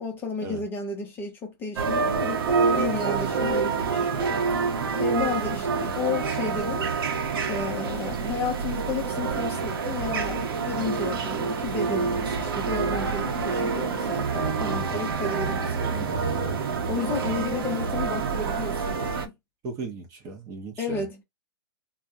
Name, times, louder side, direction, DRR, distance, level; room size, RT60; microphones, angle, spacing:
voice 1, 0.0-4.3 4.9-6.9 7.5-16.0 16.9-19.3 20.8-21.2, left 5 dB, 15° left, 0.6 m, -32 dB
sound 1, 1.8-19.3, right 5 dB, 60° right, 0.8 m, -27 dB
voice 2, 15.9-16.5 19.6-21.1, right 3 dB, 25° right, 0.7 m, -37 dB
2.3 x 2.0 x 2.7 m
hypercardioid pair, 140°, 14 cm